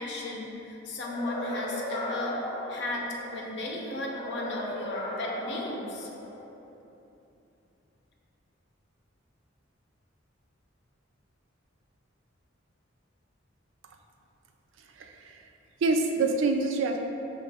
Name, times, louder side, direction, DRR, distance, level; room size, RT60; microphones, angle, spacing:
voice 1, 0.0-6.1, left 2 dB, 60° left, -1 dB, 0.6 m, -35 dB
sound 1, 1.0-3.4 4.0-6.4, left 1 dB, 25° left, 0.8 m, -36 dB
voice 2, 15.0-15.4 15.8-17.0, right 3 dB, 75° right, 4 dB, 0.4 m, -26 dB
5.8 x 2.4 x 3.4 m, 2.8 s
head